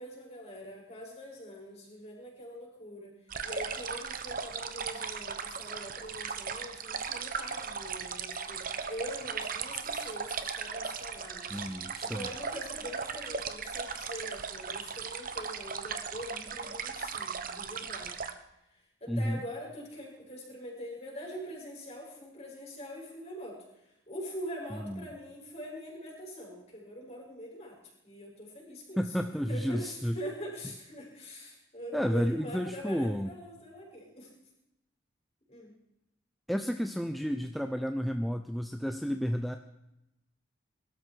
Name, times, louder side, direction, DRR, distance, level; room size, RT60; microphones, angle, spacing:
voice 1, 0.0-3.1 3.4-11.6 12.0-18.2 18.7-23.6 24.1-27.8 28.0-29.0 29.5-34.3 35.5-35.7, equal, 30° left, -2 dB, 6.3 m, -43 dB
sound 1, 3.3-18.3, right 6 dB, 40° right, 1.1 m, -37 dB
voice 2, 11.5-12.3 19.1-19.4 24.7-25.1 29.0-30.2 31.9-33.3 36.5-39.6, equal, ahead, 6 dB, 0.6 m, -31 dB
22.0 x 13.0 x 4.7 m, 0.88 s
head